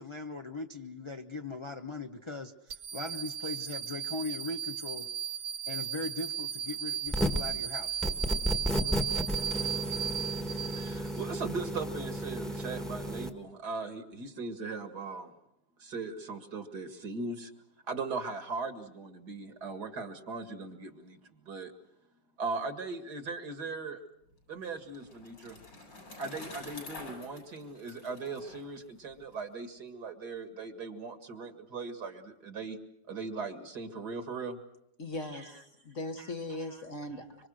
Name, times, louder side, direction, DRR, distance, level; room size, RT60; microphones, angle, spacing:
voice 1, 0.0-5.1 5.7-7.9, left 3 dB, 25° left, 0.6 m, -39 dB
sound 1, 2.7-11.2, right 9 dB, 85° right, 3.3 m, -36 dB
sound 2, 7.1-7.5 8.0-13.3, equal, ahead, 1.5 m, -33 dB
voice 2, 10.8-15.3 15.8-17.5 17.9-21.2 21.4-21.7 22.4-24.0 24.5-25.6 26.2-32.8 33.1-34.6 35.3-35.5 36.2-36.3 36.7-36.8, right 4 dB, 60° right, 2.6 m, -39 dB
Bicycle, 24.3-29.4, left 2 dB, 75° left, 7.8 m, -48 dB
voice 3, 35.0-37.5, left 1 dB, 45° left, 1.6 m, -39 dB
25.5 x 25.0 x 6.4 m
omnidirectional pair, 2.0 m